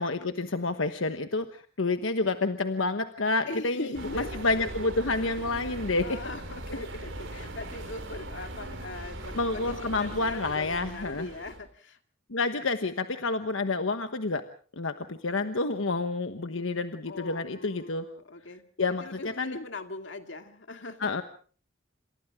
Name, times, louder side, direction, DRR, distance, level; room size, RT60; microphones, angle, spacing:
voice 1, 0.0-6.2 6.7-6.9 9.3-11.3 12.3-14.4 14.8-18.1 18.8-19.6 21.0-21.2, left 3 dB, 90° left, 8 dB, 1.2 m, -29 dB
voice 2, 3.4-4.3 4.6-4.9 6.0-12.0 17.1-21.2, left 2 dB, 70° left, 6 dB, 2.2 m, -40 dB
sound 1, 3.9-11.6, right 1 dB, 85° right, 5.4 m, -40 dB
28.0 x 27.0 x 3.7 m, 0.43 s
head